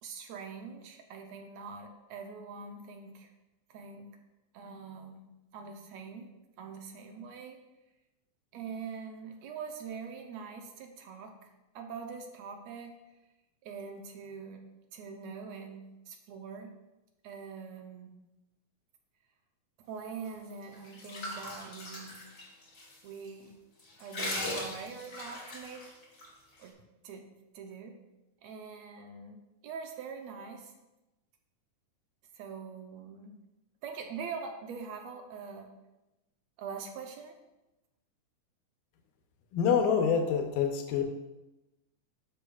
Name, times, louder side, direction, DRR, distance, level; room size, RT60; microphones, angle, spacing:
voice 1, 0.0-3.3 3.7-4.1 4.5-5.2 5.5-6.3 6.6-7.6 8.5-13.0 13.6-14.6 14.9-16.7 17.2-18.1 19.8-22.2 23.0-23.6 24.0-25.9 26.6-27.3 27.5-28.0 28.4-30.7 32.3-33.4 33.8-35.7 36.6-37.4, right 5 dB, 75° right, 4 dB, 1.7 m, -43 dB
sound 1, 20.5-22.9 23.3-23.4 23.8-26.3, left 1 dB, 45° left, 1.1 m, -39 dB
voice 2, 39.5-41.0, left 7 dB, 90° left, 4 dB, 2.4 m, -26 dB
11.0 x 6.2 x 2.4 m, 0.99 s
omnidirectional pair, 3.6 m